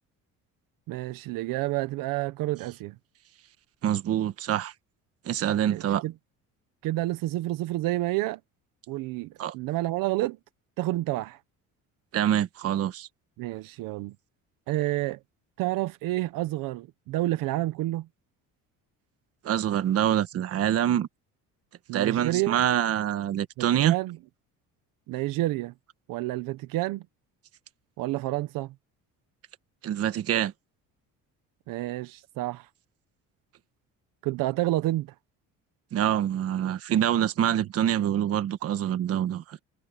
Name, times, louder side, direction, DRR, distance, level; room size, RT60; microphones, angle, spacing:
voice 1, 0.9-3.0 5.5-6.1 6.8-8.4 8.9-10.4 10.8-11.4 13.4-14.1 14.7-15.2 15.6-18.1 21.9-22.6 23.6-24.2 25.1-25.7 26.1-27.0 28.0-28.7 31.7-32.7 34.2-35.1, right 17 dB, 70° right, 1.0 m, -29 dB
voice 2, 3.8-4.7 5.2-6.0 9.4-9.5 12.1-13.1 19.4-21.1 21.9-23.9 29.8-30.5 35.9-39.6, right 10 dB, 45° right, 1.3 m, -25 dB
cardioid pair, 170°, 34 cm